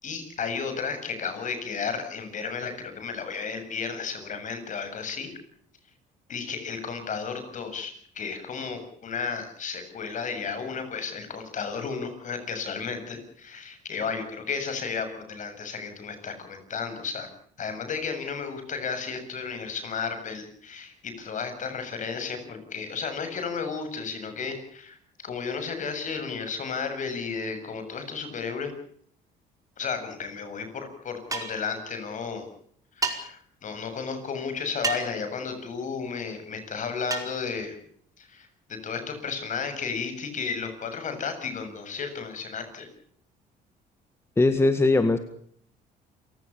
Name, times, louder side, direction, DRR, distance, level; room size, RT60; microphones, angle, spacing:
voice 1, 0.0-5.3 6.3-17.3 17.6-25.0 25.2-28.7 29.8-32.5 33.0-37.8 38.2-42.9, left 5 dB, 50° left, 8 dB, 7.2 m, -33 dB
sound 1, 31.3-31.7 33.0-33.2 34.8-35.2 37.1-37.3, right 4 dB, 20° right, 4.9 m, -29 dB
voice 2, 44.4-45.2, left 2 dB, 15° left, 9 dB, 1.8 m, -20 dB
28.5 x 17.5 x 7.0 m, 0.62 s
cardioid pair, 110°, 17 cm